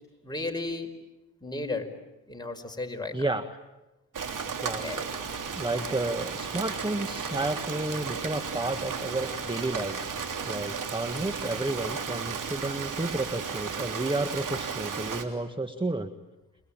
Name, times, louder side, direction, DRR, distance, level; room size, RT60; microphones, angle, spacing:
voice 1, 0.2-0.9 1.4-1.9 2.3-3.2 4.3-4.4 4.8-5.1, left 2 dB, 10° left, 3 dB, 5.2 m, -34 dB
voice 2, 3.1-3.5 4.6-5.1 5.6-10.1 10.4-16.1, right 2 dB, 15° right, 9 dB, 1.6 m, -31 dB
Rain, 4.1-15.2, right 6 dB, 55° right, 3.4 m, -34 dB
28.5 x 22.0 x 9.0 m, 1.0 s
supercardioid pair, 50°, 37 cm